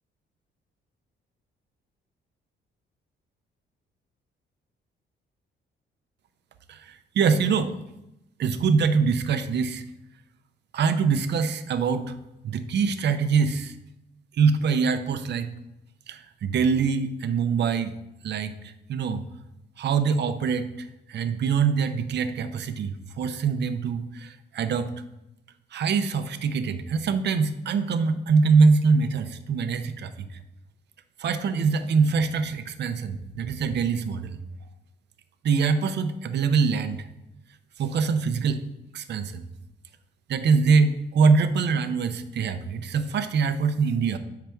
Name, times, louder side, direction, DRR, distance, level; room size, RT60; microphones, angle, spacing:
voice 1, 6.7-7.7 8.4-9.8 10.7-12.1 12.4-13.7 14.3-15.5 16.1-17.9 18.2-19.2 19.8-24.9 25.7-30.4 31.2-34.4 35.4-37.1 37.8-38.6 38.9-39.4 40.3-44.2, right 5 dB, 60° right, 10 dB, 0.7 m, -24 dB
7.6 x 5.7 x 3.4 m, 0.89 s
cardioid pair, 90°, 20 cm